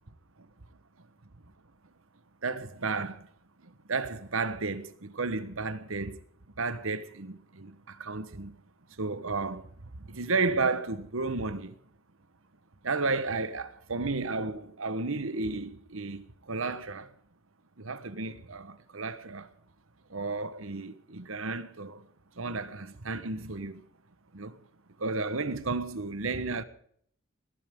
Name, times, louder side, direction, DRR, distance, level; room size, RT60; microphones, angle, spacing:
voice 1, 2.4-3.3 3.6-6.2 6.6-8.6 9.0-11.7 12.8-17.1 17.8-19.5 20.1-22.1 22.3-23.8 24.3-24.6 25.0-26.6, right 3 dB, 75° right, 1.3 m, -33 dB
21.5 x 16.0 x 3.8 m
head